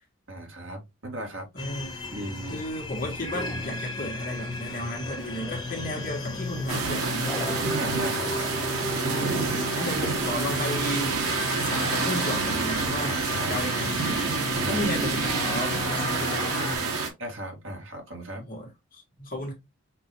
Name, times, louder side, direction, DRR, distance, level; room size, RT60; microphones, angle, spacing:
voice 1, 0.3-1.5 2.1-2.6 7.8-8.3 13.1-13.7 14.6-14.9 17.2-18.4, right 1 dB, 65° right, 1.9 m, -36 dB
voice 2, 1.5-2.0 2.5-7.5 9.0-13.2 13.5-14.2 14.7-17.0 18.5-19.5, left 1 dB, 40° left, 1.6 m, -34 dB
sound 1, 1.6-16.8, left 2 dB, 20° left, 1.1 m, -34 dB
sound 2, 6.7-17.1, right 4 dB, 85° right, 1.5 m, -28 dB
5.9 x 2.8 x 3.0 m
head